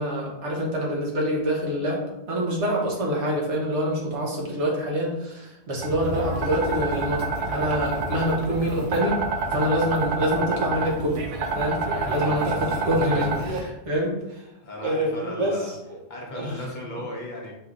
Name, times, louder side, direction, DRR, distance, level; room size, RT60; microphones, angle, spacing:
voice 1, 0.0-9.2 9.5-11.2 11.6-11.8 12.1-14.4 14.8-15.6 16.3-16.6 17.0-17.1, equal, 70° right, -2 dB, 1.3 m, -26 dB
sound 1, 5.8-13.6, right 3 dB, 55° right, 0.6 m, -28 dB
voice 2, 11.8-12.4 14.6-15.7 16.1-17.5, left 1 dB, 45° left, -2 dB, 0.9 m, -36 dB
5.3 x 3.2 x 2.4 m, 0.91 s
omnidirectional pair, 1.2 m